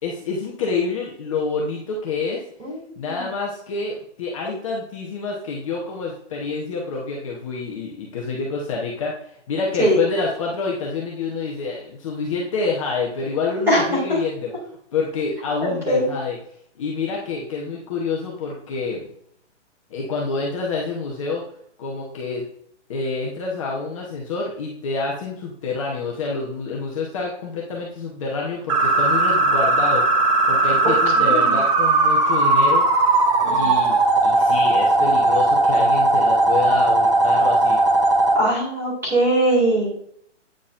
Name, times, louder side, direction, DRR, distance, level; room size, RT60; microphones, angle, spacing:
voice 1, 0.0-2.4 3.0-9.1 9.5-14.5 14.9-16.4 16.8-19.0 19.9-21.4 21.8-22.5 22.9-30.0 30.5-33.1 33.4-34.0 34.2-37.8, left 4 dB, 25° left, -2 dB, 0.9 m, -27 dB
voice 2, 2.6-3.3 9.8-10.0 13.7-13.8 14.1-14.2 15.6-16.1 31.2-31.6 33.4-33.7 38.3-39.9, right 1 dB, 5° right, -6 dB, 2.2 m, -21 dB
sound 1, 28.7-38.3, right 2 dB, 25° right, 0.9 m, -18 dB
8.8 x 6.3 x 2.5 m, 0.66 s
hypercardioid pair, 165°, 36 cm